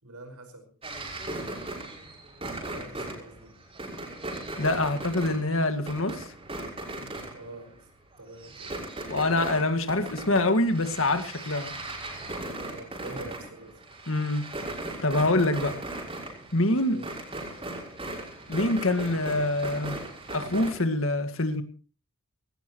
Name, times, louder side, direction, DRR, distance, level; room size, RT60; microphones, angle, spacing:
voice 1, 0.0-0.7 2.5-3.6 7.3-7.9 8.2-8.8 12.6-13.9 16.9-17.2, right 2 dB, 90° right, 7 dB, 5.4 m, -45 dB
sound 1, 0.8-7.8 8.1-20.7, right 2 dB, 25° right, 5.9 m, -38 dB
voice 2, 4.6-6.3 9.1-11.8 14.1-14.5 15.0-15.8 16.5-17.0 18.5-20.0 20.3-21.6, left 2 dB, 65° left, 9 dB, 1.9 m, -25 dB
20.0 x 18.5 x 3.1 m, 0.38 s
head